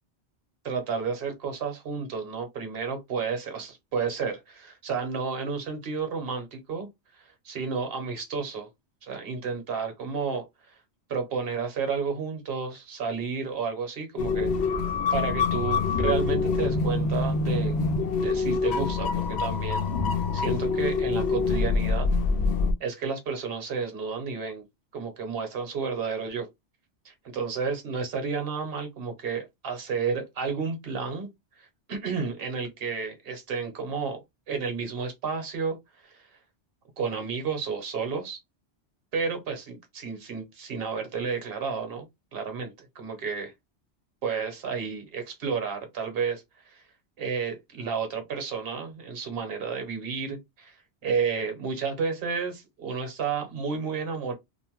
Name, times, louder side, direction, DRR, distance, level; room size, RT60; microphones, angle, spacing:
voice 1, 0.6-6.9 7.4-8.7 9.0-10.5 11.1-14.5 15.1-17.8 18.1-19.9 20.3-22.1 22.8-24.6 24.9-26.5 27.0-31.3 31.6-34.2 34.5-35.8 37.0-38.4 39.1-42.1 42.3-43.5 44.2-46.4 46.7-46.8 47.2-50.8 51.0-54.3, right 5 dB, 60° right, 1.1 m, -31 dB
sound 1, 14.2-22.7, left 4 dB, 75° left, 0.8 m, -25 dB
2.6 x 2.1 x 3.0 m
omnidirectional pair, 1.1 m